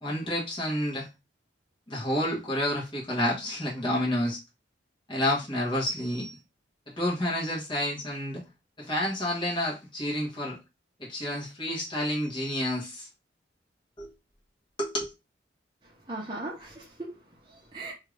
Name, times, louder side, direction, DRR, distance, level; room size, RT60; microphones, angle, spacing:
voice 1, 0.0-1.1 1.9-4.4 5.1-6.4 6.9-8.4 8.8-10.6 11.0-13.1 14.0-14.1 14.8-15.1, left 1 dB, 25° left, 1.1 m, -29 dB
voice 2, 15.8-17.9, right 2 dB, 25° right, 0.7 m, -39 dB
2.8 x 2.4 x 3.1 m
head